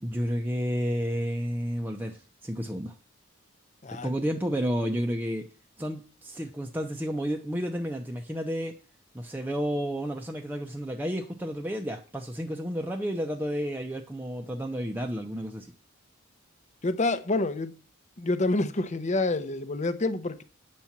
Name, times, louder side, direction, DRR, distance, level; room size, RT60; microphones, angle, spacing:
voice 1, 0.0-2.9 3.9-5.5 5.8-8.7 9.1-15.7, equal, 10° right, 3 dB, 0.7 m, -31 dB
voice 2, 16.8-17.7 18.2-20.4, left 2 dB, 35° left, 11 dB, 0.8 m, -27 dB
9.3 x 4.4 x 7.3 m, 0.37 s
head